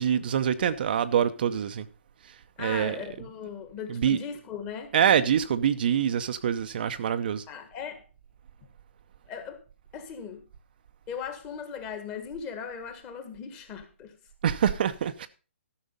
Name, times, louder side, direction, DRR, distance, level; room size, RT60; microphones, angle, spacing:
voice 1, 0.0-1.9 2.6-3.0 3.9-4.2 4.9-7.4 14.4-15.3, right 8 dB, 45° right, 0.7 m, -25 dB
voice 2, 2.6-4.9 7.5-8.0 9.3-9.6 9.9-10.4 11.1-14.1, left 7 dB, 20° left, 1.6 m, -38 dB
13.0 x 6.3 x 5.4 m
hypercardioid pair, 155°, 7 cm